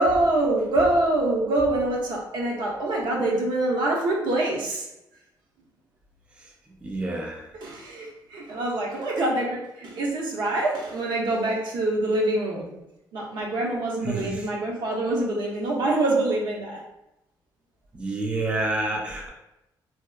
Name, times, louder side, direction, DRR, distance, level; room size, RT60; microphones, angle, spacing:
voice 1, 0.0-4.9 7.6-12.7 13.1-16.8, right 2 dB, 75° right, -2 dB, 0.7 m, -25 dB
voice 2, 6.8-7.5 14.0-14.5 17.9-19.3, right 2 dB, 15° right, -1 dB, 0.3 m, -28 dB
2.8 x 2.1 x 2.2 m, 0.89 s
cardioid pair, 140°, 8 cm